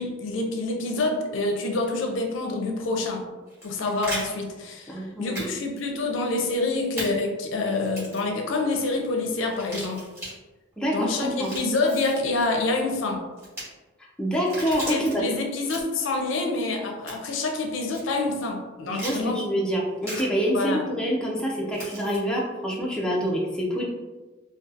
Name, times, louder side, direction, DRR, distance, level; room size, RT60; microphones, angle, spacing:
voice 1, 0.0-3.2 3.6-10.0 10.9-13.2 14.9-19.5 20.5-20.8, left 3 dB, 75° left, 2 dB, 0.4 m, -27 dB
sound 1, 3.5-4.2 5.3-5.5 5.8-5.9 7.0-7.1 7.9-8.3 9.5-10.3 11.2-12.2 13.4-13.6 14.3-15.1 15.6-16.1 17.1-17.4 17.9-18.0 18.9-19.2 20.0-20.2 21.7-22.2, equal, 15° right, 1.2 m, -36 dB
voice 2, 4.9-5.5 10.8-11.5 14.2-15.2 18.9-23.8, equal, 5° left, -4 dB, 0.4 m, -26 dB
2.6 x 2.3 x 2.4 m, 1.2 s
head